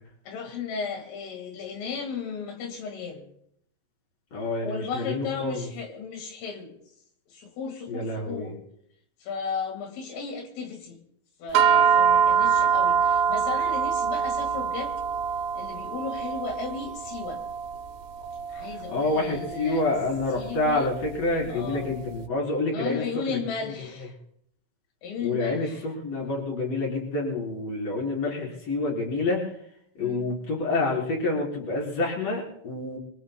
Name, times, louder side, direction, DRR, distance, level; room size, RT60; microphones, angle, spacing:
voice 1, 0.3-3.3 4.6-6.8 7.3-8.6 9.2-11.0 11.4-14.9 15.5-17.4 18.5-19.8 20.4-20.9 21.5-22.0 22.7-24.2 25.0-25.8 30.0-30.3, left 5 dB, 80° left, 3 dB, 4.5 m, -35 dB
voice 2, 4.3-5.7 7.9-8.5 18.9-23.7 25.2-29.5 30.0-33.0, left 2 dB, 35° left, -2 dB, 4.6 m, -28 dB
sound 1, 11.5-22.0, right 7 dB, 75° right, 3.0 m, -25 dB
24.5 x 23.5 x 2.2 m, 0.72 s
omnidirectional pair, 5.7 m